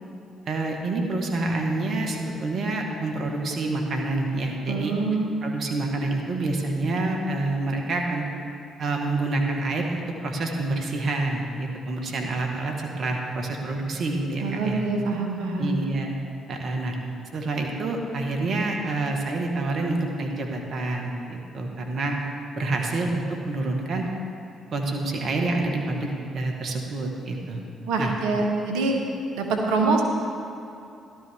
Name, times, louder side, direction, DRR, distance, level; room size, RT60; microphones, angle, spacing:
voice 1, 0.5-4.9 5.4-8.2 8.8-14.8 15.6-16.1 16.5-16.9 17.3-22.2 22.6-24.0 24.7-27.6 28.0-28.1, right 2 dB, 60° right, 2 dB, 1.6 m, -27 dB
voice 2, 4.7-5.4 14.4-15.8 27.9-29.0 29.3-30.0, right 3 dB, 80° right, 2 dB, 1.2 m, -25 dB
14.0 x 12.5 x 3.6 m, 2.7 s
hypercardioid pair, 50°, 0 cm